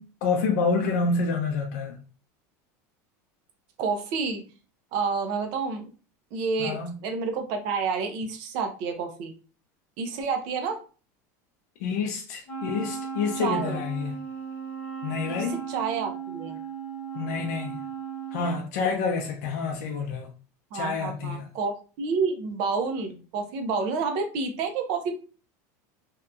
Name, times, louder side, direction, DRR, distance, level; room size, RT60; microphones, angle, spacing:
voice 1, 0.0-2.0 6.6-6.9 11.8-14.2 15.0-15.6 17.1-17.8 18.3-20.3 20.7-21.5, left 4 dB, 70° left, 0.5 m, -28 dB
voice 2, 3.8-4.4 4.9-5.9 6.3-9.3 10.0-10.8 13.4-13.8 15.3-16.6 20.7-25.1, right 5 dB, 55° right, 0.5 m, -29 dB
Wind instrument woodwind instrument, 12.5-18.6, right 6 dB, 15° left, 0.8 m, -36 dB
2.7 x 2.2 x 2.4 m
supercardioid pair, 150°, 9 cm